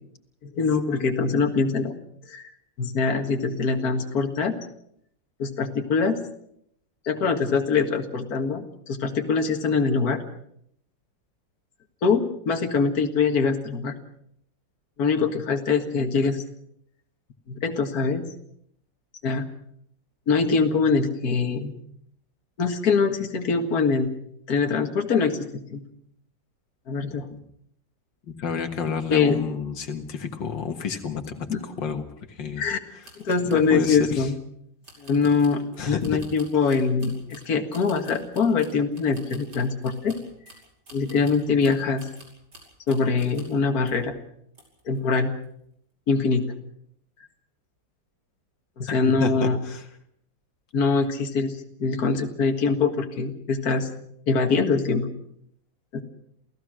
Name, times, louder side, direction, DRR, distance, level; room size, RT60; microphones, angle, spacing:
voice 1, 0.4-1.9 2.3-2.5 2.8-4.5 5.4-6.2 7.1-10.2 12.0-13.9 15.0-16.4 17.5-18.3 19.2-19.5 20.3-21.8 22.6-24.1 24.5-25.8 26.9-27.3 29.1-29.4 31.5-31.6 32.6-32.8 33.2-34.4 35.0-40.1 40.9-42.1 42.9-44.1 44.9-45.3 46.1-46.4 48.8-49.6 50.7-53.9 54.3-55.1 55.9-56.0, left 4 dB, 55° left, 4 dB, 2.2 m, -23 dB
voice 2, 27.0-27.4 28.4-32.0 32.3-32.6 33.4-34.3 35.8-36.2 49.2-49.8, left 6 dB, 85° left, 6 dB, 2.3 m, -30 dB
sound 1, 33.0-34.1 34.8-43.6 43.9-44.1 44.5-45.0 45.3-45.5, right 1 dB, 65° right, 6.2 m, -50 dB
28.5 x 16.5 x 6.3 m, 0.71 s
omnidirectional pair, 2.0 m